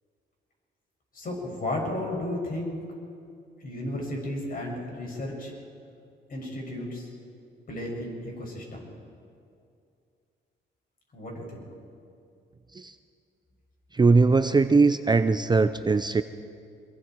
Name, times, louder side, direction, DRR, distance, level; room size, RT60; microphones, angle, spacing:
voice 1, 1.1-2.8 3.6-5.5 6.3-7.1 7.7-8.9 11.1-11.7, left 1 dB, 45° left, -1 dB, 7.2 m, -33 dB
voice 2, 13.9-16.2, right 4 dB, 20° right, 10 dB, 0.7 m, -20 dB
26.5 x 23.0 x 4.7 m, 2.5 s
cardioid pair, 90°, 20 cm